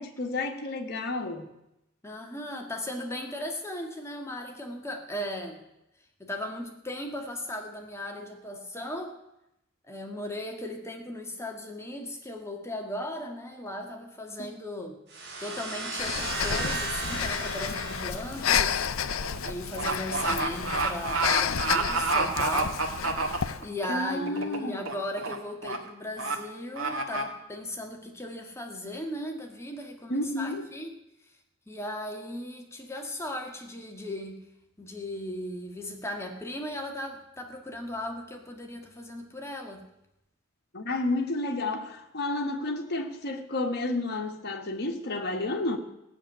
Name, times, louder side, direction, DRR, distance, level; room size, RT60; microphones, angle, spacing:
voice 1, 0.0-1.5 14.4-14.5 23.9-24.9 30.1-30.7 40.7-45.8, left 2 dB, 55° left, 2 dB, 1.7 m, -31 dB
voice 2, 2.0-5.6 6.2-9.1 9.9-15.0 15.4-18.9 19.4-22.8 23.6-30.9 31.7-34.4 34.8-39.8, left 1 dB, 15° left, 2 dB, 1.7 m, -37 dB
sound 1, 15.1-18.8, right 3 dB, 60° right, 3.3 m, -35 dB
Breathing, 16.0-23.7, left 7 dB, 85° left, 0.6 m, -31 dB
sound 2, 17.8-18.0 18.4-23.9 24.3-24.6 24.9-25.4 25.6-25.8 26.2-26.4 26.8-27.2, right 3 dB, 75° right, 1.9 m, -28 dB
16.0 x 7.4 x 9.7 m, 0.87 s
head